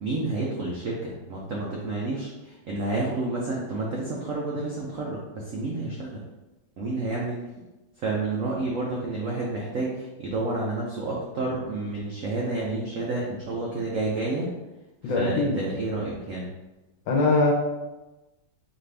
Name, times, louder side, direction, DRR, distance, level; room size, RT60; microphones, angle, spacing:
voice 1, 0.0-6.2 6.8-7.4 8.0-14.5 15.0-16.5, right 2 dB, 70° right, -3 dB, 0.7 m, -30 dB
voice 2, 15.0-15.6 17.1-17.5, left 3 dB, 70° left, -1 dB, 1.5 m, -22 dB
5.0 x 2.6 x 3.3 m, 1.1 s
omnidirectional pair, 2.2 m